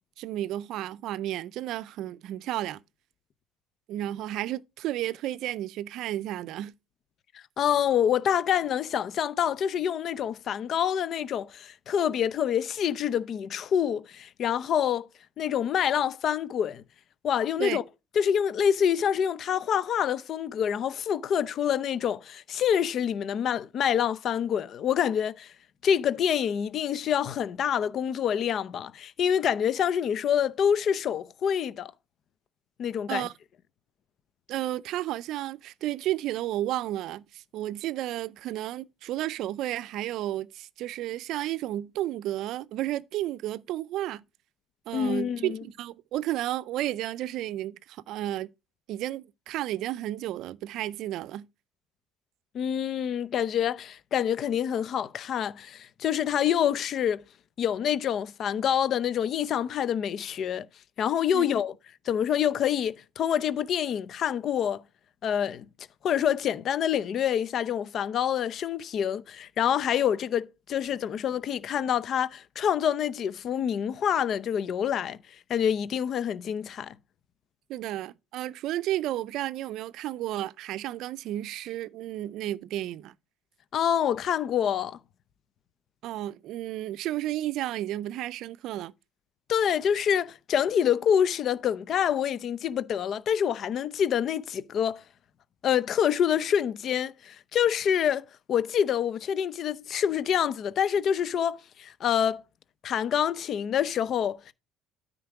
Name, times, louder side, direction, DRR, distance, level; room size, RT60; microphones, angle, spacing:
voice 1, 0.2-2.8 3.9-6.7 17.6-17.8 33.1-33.3 34.5-44.2 44.9-48.5 48.9-51.5 61.3-61.5 77.7-83.1 86.0-88.9, right 14 dB, 65° right, 0.4 m, -32 dB
voice 2, 7.6-15.1 15.4-16.8 17.2-17.8 18.2-25.5 25.8-31.9 32.8-33.3 44.9-45.6 52.5-57.2 57.6-60.7 61.0-61.7 62.1-64.8 65.2-65.6 66.0-75.2 75.5-76.9 83.7-85.0 89.5-95.0 95.6-102.4 102.8-104.5, left 9 dB, 55° left, 0.6 m, -26 dB
9.4 x 5.2 x 4.8 m
supercardioid pair, 80°, 0 cm